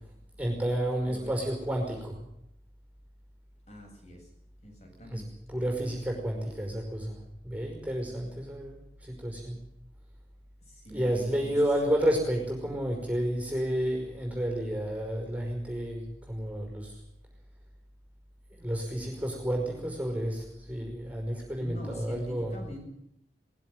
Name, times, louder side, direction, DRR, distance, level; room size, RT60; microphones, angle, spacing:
voice 1, 0.4-2.2 5.1-5.2 5.5-9.6 10.9-17.0 18.6-22.6, right 1 dB, 10° right, 1 dB, 5.3 m, -31 dB
voice 2, 3.7-4.3 4.6-5.3 10.6-11.6 21.6-22.8, equal, 40° left, 1 dB, 8.0 m, -45 dB
20.0 x 15.5 x 9.2 m, 0.76 s
head